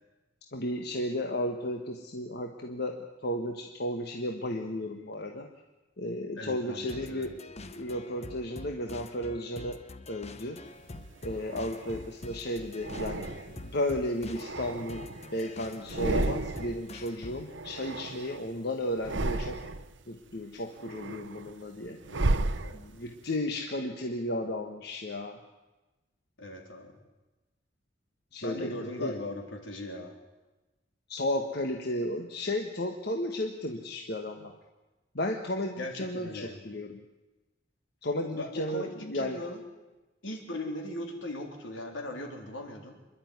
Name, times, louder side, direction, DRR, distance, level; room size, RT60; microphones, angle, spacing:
voice 1, 0.5-3.0 3.2-5.5 6.0-9.8 10.1-10.6 11.2-13.3 13.6-15.1 15.3-19.6 20.1-22.0 22.7-25.4 28.3-28.7 29.0-29.1 31.1-34.5 35.1-37.0 38.0-39.4, left 1 dB, 55° left, 3 dB, 1.4 m, -33 dB
voice 2, 6.4-7.3 22.0-22.8 26.4-27.0 28.4-30.1 35.8-36.6 38.3-39.6 40.2-43.0, left 1 dB, 80° left, 3 dB, 3.8 m, -39 dB
sound 1, 6.9-17.6, left 2 dB, 35° left, 0.9 m, -46 dB
sound 2, 10.9-12.1 12.8-13.7 14.2-15.4 15.8-16.9 17.1-18.5 18.9-20.0 20.4-23.2, right 2 dB, 70° right, 0.9 m, -34 dB
26.0 x 11.5 x 9.6 m, 1.1 s
head